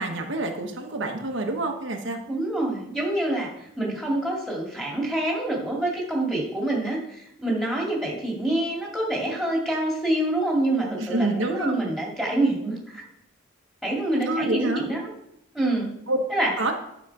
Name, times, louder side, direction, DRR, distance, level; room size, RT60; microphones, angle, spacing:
voice 1, 0.0-2.2 11.0-11.9 14.3-14.8 16.1-16.2 16.6-16.7, right 2 dB, 65° right, 2 dB, 1.1 m, -27 dB
voice 2, 2.3-3.5 3.8-13.0 13.8-15.1 15.5-15.9 16.3-16.5, right 1 dB, ahead, -3 dB, 2.3 m, -26 dB
9.4 x 6.5 x 4.8 m, 0.80 s
head